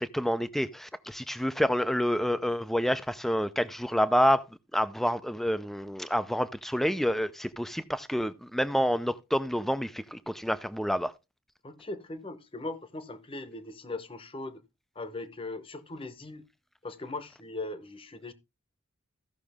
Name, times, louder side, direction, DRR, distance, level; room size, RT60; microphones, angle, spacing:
voice 1, 0.0-4.5 4.7-11.1, equal, ahead, 0.5 m, -28 dB
voice 2, 11.6-14.6 14.9-16.5 16.8-18.3, left 2 dB, 25° left, 0.9 m, -39 dB
15.0 x 6.2 x 3.5 m
head